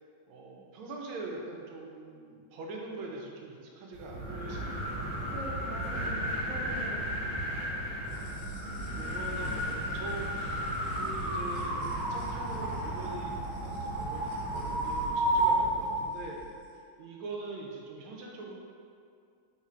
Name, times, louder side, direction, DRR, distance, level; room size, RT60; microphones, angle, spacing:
voice 1, 0.3-5.2 8.1-16.4 16.7-18.5, right 3 dB, 85° right, -1 dB, 1.4 m, -43 dB
sound 1, 3.9-16.1, right 1 dB, 60° right, 1.3 m, -32 dB
voice 2, 5.3-7.3 8.8-9.1, left 1 dB, 70° left, -9 dB, 0.6 m, -43 dB
Squeaking Doors Mixture, 8.0-16.7, equal, 90° left, 1.4 m, -48 dB
3.8 x 2.4 x 4.2 m, 2.3 s
omnidirectional pair, 2.2 m